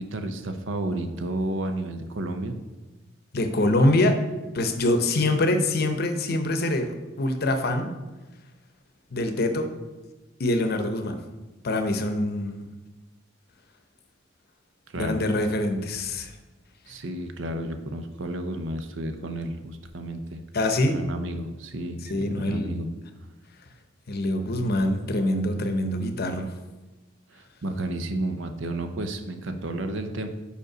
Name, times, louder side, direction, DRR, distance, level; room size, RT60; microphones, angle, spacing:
voice 1, 0.0-2.6 14.9-15.2 16.9-20.4 20.9-22.9 27.3-30.3, right 1 dB, 70° right, 7 dB, 0.7 m, -31 dB
voice 2, 3.3-4.2 4.5-7.9 9.1-9.7 10.4-11.2 11.6-12.6 15.0-16.3 20.5-21.0 22.1-22.7 24.1-26.5, left 1 dB, 55° left, 7 dB, 0.7 m, -24 dB
5.3 x 5.1 x 5.0 m, 1.2 s
head